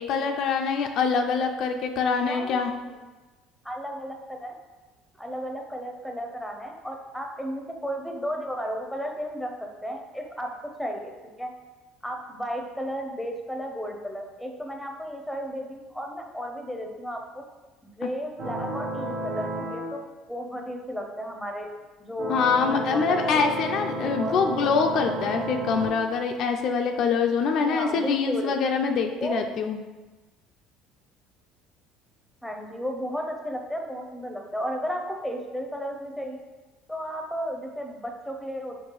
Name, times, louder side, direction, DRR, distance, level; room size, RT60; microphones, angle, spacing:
voice 1, 0.0-2.7 22.3-29.8, left 5 dB, 60° left, 4 dB, 0.3 m, -24 dB
voice 2, 2.2-3.0 3.6-4.5 5.2-10.5 10.8-11.1 11.4-11.5 12.0-17.4 17.8-20.0 20.3-21.7 22.0-22.3 22.6-23.4 23.9-24.8 27.6-28.6 29.2-29.4 32.4-36.4 36.9-38.8, equal, ahead, 2 dB, 0.6 m, -34 dB
sound 1, 18.4-19.9 22.2-25.9, right 1 dB, 60° right, 1.1 m, -32 dB
4.5 x 2.3 x 3.0 m, 1.2 s
supercardioid pair, 85°, 0 cm